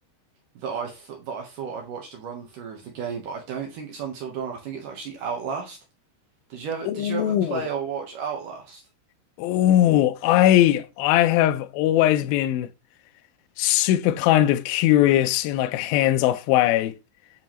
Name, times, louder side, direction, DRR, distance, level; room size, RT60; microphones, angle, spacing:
voice 1, 0.6-5.8 6.5-8.8, right 6 dB, 65° right, 2.3 m, -33 dB
voice 2, 6.9-7.6 9.4-12.7 13.6-17.0, left 13 dB, 80° left, 2.1 m, -20 dB
9.1 x 4.5 x 3.0 m
omnidirectional pair, 4.8 m